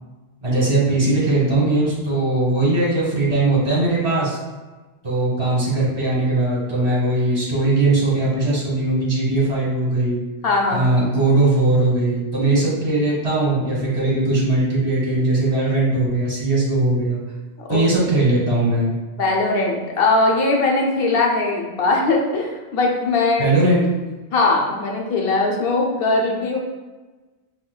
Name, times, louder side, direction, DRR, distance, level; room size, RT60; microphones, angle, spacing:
voice 1, 0.4-4.4 5.0-10.2 10.7-17.2 17.7-18.9 23.4-23.8, right 2 dB, 30° right, -6 dB, 1.0 m, -19 dB
voice 2, 10.4-10.9 17.6-17.8 19.2-23.5 24.3-26.6, left 3 dB, 65° left, -1 dB, 0.8 m, -20 dB
4.8 x 2.1 x 2.3 m, 1.2 s
omnidirectional pair, 1.1 m